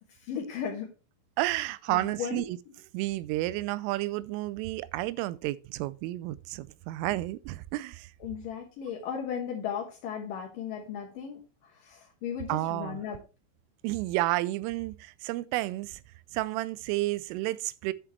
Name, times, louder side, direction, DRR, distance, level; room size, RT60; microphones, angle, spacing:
voice 1, 0.1-0.9 1.9-2.4 8.2-13.2, left 8 dB, 75° left, 2.0 m, -36 dB
voice 2, 1.4-2.6 2.9-8.1 12.5-13.0 13.8-16.0 16.3-17.9, right 18 dB, 90° right, 3.2 m, -31 dB
10.5 x 7.2 x 3.2 m
omnidirectional pair, 5.6 m